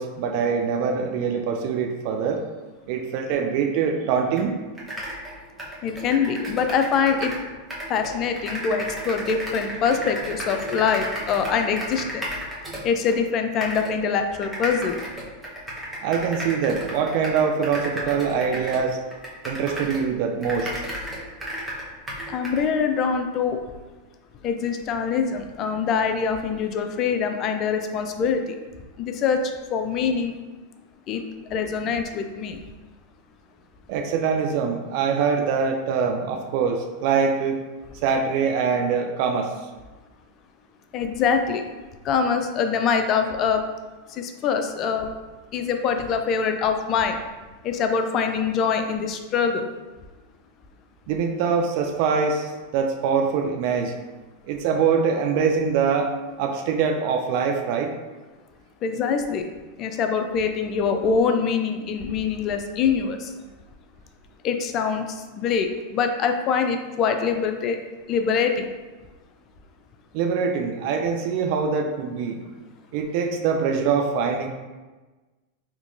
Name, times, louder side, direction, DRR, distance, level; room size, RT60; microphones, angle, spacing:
voice 1, 0.0-2.4 2.9-4.6 16.0-19.0 19.4-20.7 33.9-37.6 38.0-39.5 51.1-54.0 54.4-56.1 56.4-57.9 70.1-72.5 72.9-74.5, right 6 dB, 60° right, 3 dB, 0.4 m, -24 dB
sound 1, 4.4-4.5 4.7-7.4 7.7-13.2 13.6-13.9 14.4-20.1 20.4-22.6, equal, 10° right, 1.0 m, -34 dB
voice 2, 5.8-7.3 7.9-12.3 12.8-15.0 22.3-23.6 24.4-28.6 29.0-29.4 29.7-30.3 31.1-31.2 31.5-32.6 40.9-41.6 42.0-43.6 44.1-45.1 45.5-47.2 47.6-49.6 58.8-59.5 59.8-63.3 64.4-67.8 68.1-68.7, left 6 dB, 45° left, 6 dB, 0.4 m, -24 dB
3.6 x 2.8 x 2.6 m, 1.3 s
hypercardioid pair, 105°, 0 cm